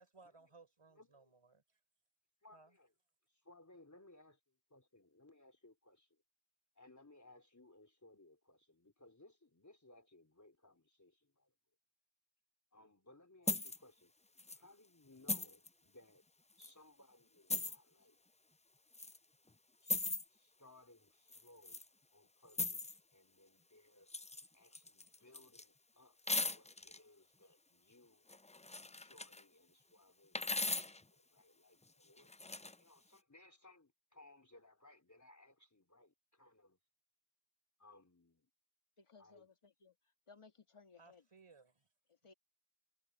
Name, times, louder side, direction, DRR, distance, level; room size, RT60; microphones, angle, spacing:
voice 1, 0.0-1.8 2.5-2.8 41.0-41.9, right 3 dB, 85° right, 4.4 m, -63 dB
voice 2, 0.9-1.3 2.4-2.9 3.3-6.2 6.8-11.5 12.7-14.1 14.5-16.2 16.6-18.2 19.8-21.8 22.1-24.1 24.5-28.3 28.9-32.3 32.8-36.8 37.8-38.5 39.2-39.5, left 2 dB, 35° left, 3.8 m, -64 dB
sound 1, 13.5-13.8 14.4-14.6 15.3-15.7 16.6-16.7 17.5-17.8 18.9-19.2 19.9-20.2 21.3-21.8 22.5-23.0 24.1-24.5 24.7-25.6 26.3-27.0 28.3-29.4 30.4-31.0 32.2-32.8, left 2 dB, 15° left, 0.5 m, -39 dB
voice 3, 39.0-40.0 40.3-41.2 42.1-42.3, left 4 dB, 85° left, 2.0 m, -62 dB
wide cardioid pair, 40°, 50 cm